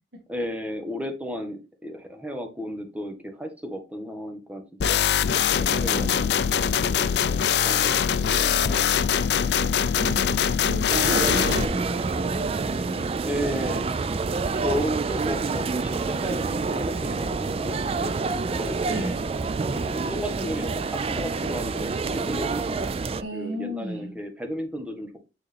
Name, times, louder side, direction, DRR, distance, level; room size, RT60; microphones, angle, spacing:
voice 1, 0.3-5.0 5.6-10.0 12.6-12.9 13.2-14.1 14.5-19.2 19.7-22.9 23.3-25.2, equal, 10° right, 4 dB, 1.2 m, -35 dB
sound 1, 4.8-11.7, left 8 dB, 65° left, 0.4 m, -22 dB
voice 2, 5.8-6.2 9.9-13.1 18.9-19.3 23.2-24.1, right 1 dB, 65° right, 0 dB, 1.4 m, -34 dB
sound 2, 10.9-23.2, right 4 dB, 35° right, 0.3 m, -27 dB
8.9 x 3.7 x 3.3 m, 0.29 s
head